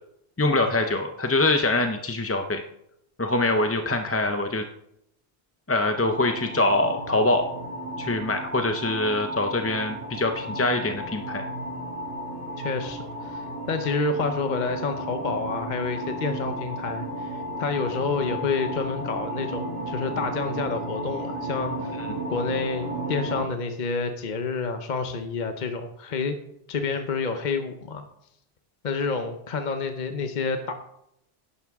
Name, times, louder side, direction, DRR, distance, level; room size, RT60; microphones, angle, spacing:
voice 1, 0.4-2.6 3.2-4.6 5.7-7.5 8.0-11.4 22.0-22.1, left 2 dB, 20° left, 5 dB, 0.5 m, -24 dB
sound 1, 6.0-23.4, right 1 dB, 55° right, 2.8 m, -34 dB
voice 2, 12.6-22.0 22.3-26.4 26.7-28.0 28.8-30.7, left 4 dB, 50° left, 7 dB, 0.9 m, -29 dB
11.5 x 10.5 x 3.6 m, 0.78 s
omnidirectional pair, 1.1 m